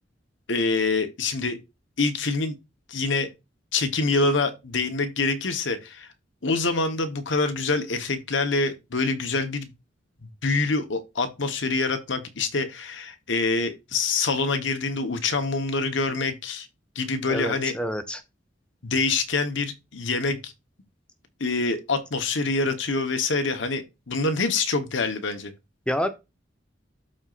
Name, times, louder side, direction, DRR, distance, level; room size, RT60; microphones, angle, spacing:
voice 1, 0.5-1.6 2.0-2.5 2.9-3.3 3.7-6.1 6.4-9.7 10.2-16.7 16.9-17.7 18.8-20.5 21.4-25.5, left 3 dB, 75° left, 1.1 m, -26 dB
voice 2, 17.3-18.2 25.9-26.1, equal, 5° left, 0.9 m, -27 dB
12.5 x 4.3 x 2.5 m
head